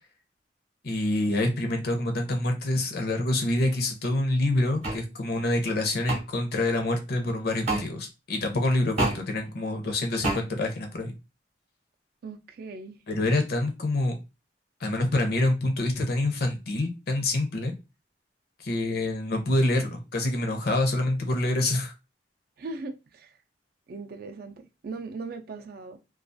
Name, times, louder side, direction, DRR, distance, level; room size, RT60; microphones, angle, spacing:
voice 1, 0.8-11.1 13.1-14.2 14.8-17.7 18.6-21.9, left 2 dB, 60° left, 0.6 m, -26 dB
sound 1, 4.8-5.0 6.1-6.2 7.7-7.8 9.0-9.2 10.2-10.4, right 2 dB, 40° right, 0.8 m, -27 dB
voice 2, 12.2-13.0 22.6-23.3 23.9-26.0, right 3 dB, 55° right, 0.4 m, -39 dB
2.3 x 2.3 x 2.5 m
head